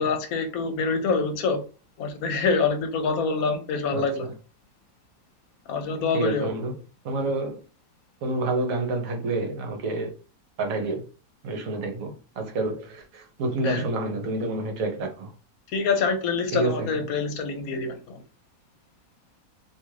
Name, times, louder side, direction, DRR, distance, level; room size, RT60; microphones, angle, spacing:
voice 1, 0.0-1.6 2.0-4.3 5.7-6.5 13.6-13.9 15.7-18.2, left 4 dB, 75° left, 1.0 m, -26 dB
voice 2, 6.1-6.7 7.0-7.6 8.2-10.1 10.6-11.0 11.4-15.3 16.5-16.9, right 2 dB, 70° right, 1.1 m, -28 dB
2.7 x 2.4 x 3.0 m
omnidirectional pair, 1.6 m